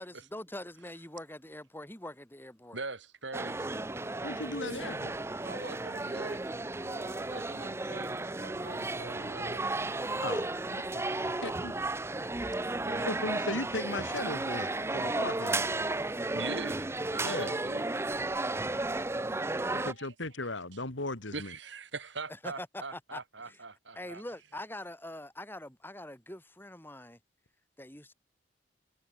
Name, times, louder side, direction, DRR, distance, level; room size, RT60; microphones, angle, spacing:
voice 1, 0.0-2.8 18.9-19.6 22.4-22.7 22.9-23.6 24.0-27.2 27.8-28.1, left 1 dB, 10° left, 5.8 m, -44 dB
voice 2, 2.7-3.8 5.4-9.9 12.8-13.1 16.3-17.8 20.0-20.1 20.4-20.5 21.3-24.2, right 3 dB, 75° right, 4.0 m, -43 dB
sound 1, 3.3-19.9, right 2 dB, 15° right, 0.5 m, -33 dB
voice 3, 4.2-5.2 10.2-10.8 11.4-11.8 13.1-15.7 17.2-17.6 19.7-21.5, left 2 dB, 85° left, 3.4 m, -37 dB
head